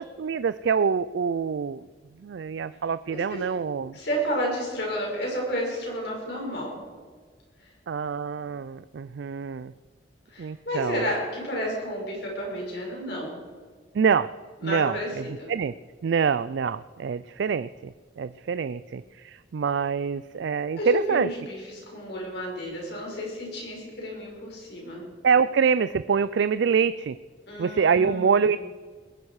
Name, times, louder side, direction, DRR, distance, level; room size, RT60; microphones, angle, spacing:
voice 1, 0.0-1.8 2.2-4.0 7.9-9.7 10.4-11.0 13.9-14.3 14.6-15.7 16.0-21.3 25.2-27.2 27.6-28.6, right 6 dB, 70° right, 15 dB, 0.4 m, -25 dB
voice 2, 3.9-6.7 7.6-7.7 10.3-13.4 14.6-15.1 15.4-15.5 20.8-25.0 27.5-28.6, equal, 65° left, -2 dB, 5.7 m, -31 dB
21.0 x 11.0 x 4.8 m, 1.6 s
head